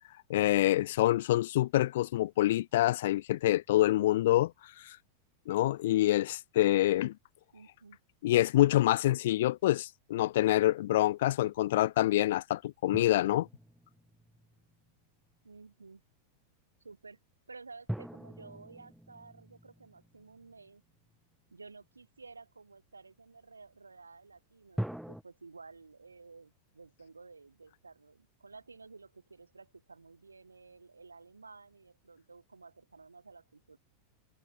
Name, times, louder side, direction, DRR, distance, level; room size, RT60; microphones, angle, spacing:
voice 1, 0.3-4.5 4.8-5.0 5.5-7.1 8.2-13.5, left 15 dB, 55° left, 0.6 m, -26 dB
voice 2, 7.5-8.0 15.4-16.0 16.8-17.2 17.5-20.8 21.5-33.8, right 4 dB, 80° right, 3.5 m, -53 dB
sound 1, 12.9-14.9 17.9-21.2 24.8-25.2, equal, ahead, 4.8 m, -42 dB
figure-of-eight pair, 90°, 0 cm